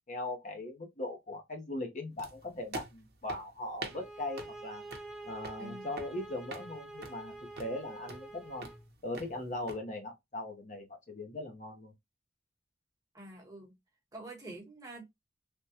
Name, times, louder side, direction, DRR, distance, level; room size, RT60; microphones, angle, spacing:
voice 1, 0.1-4.8 5.2-8.7 9.0-11.9, left 2 dB, 45° left, 0.7 m, -39 dB
sound 1, 2.2-9.8, right 3 dB, 60° right, 0.7 m, -48 dB
sound 2, 3.9-8.8, right 2 dB, 5° right, 0.4 m, -47 dB
voice 2, 5.6-5.9 13.1-13.7 14.1-15.1, right 2 dB, 20° right, 1.1 m, -46 dB
3.4 x 2.1 x 2.8 m
head